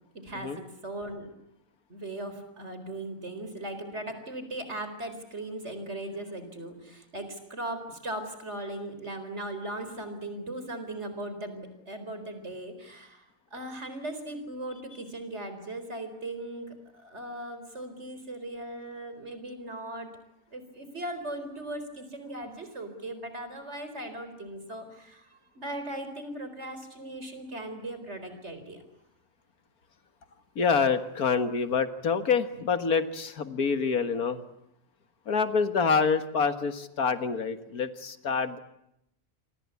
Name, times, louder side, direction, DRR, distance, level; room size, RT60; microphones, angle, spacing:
voice 1, 0.1-1.3 1.9-20.1 20.5-28.8, right 1 dB, 50° right, 9 dB, 4.6 m, -38 dB
voice 2, 30.6-34.4 35.3-38.6, left 5 dB, 80° left, 10 dB, 2.1 m, -26 dB
28.0 x 24.0 x 8.4 m, 0.82 s
omnidirectional pair, 1.5 m